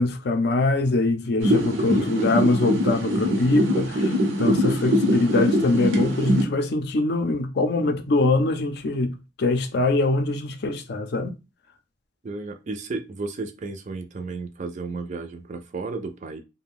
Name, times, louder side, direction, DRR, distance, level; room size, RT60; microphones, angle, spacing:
voice 1, 0.0-9.1 9.4-11.3, left 2 dB, 55° left, 0.4 m, -23 dB
sound 1, 1.4-6.4, equal, 85° right, 0.7 m, -22 dB
voice 2, 12.2-16.4, right 3 dB, 40° right, 0.3 m, -33 dB
2.5 x 2.1 x 3.4 m
head